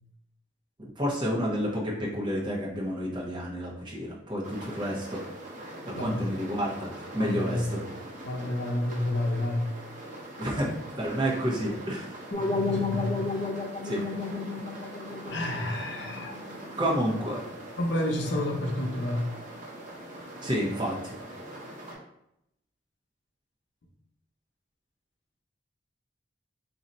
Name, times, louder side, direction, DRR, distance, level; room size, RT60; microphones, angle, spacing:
voice 1, 0.8-5.2 5.9-7.8 10.4-12.2 13.8-14.0 16.8-17.4 20.4-21.2, equal, 25° right, -4 dB, 1.0 m, -30 dB
sound 1, 4.4-21.9, right 1 dB, 45° right, 1.1 m, -42 dB
voice 2, 5.9-6.3 7.2-7.7 8.2-9.7 12.4-13.2 15.3-16.4 17.8-19.3, left 1 dB, 75° left, 2 dB, 0.7 m, -30 dB
sound 2, 12.3-17.2, left 3 dB, 30° left, 0.5 m, -33 dB
3.9 x 2.7 x 4.2 m, 0.80 s
head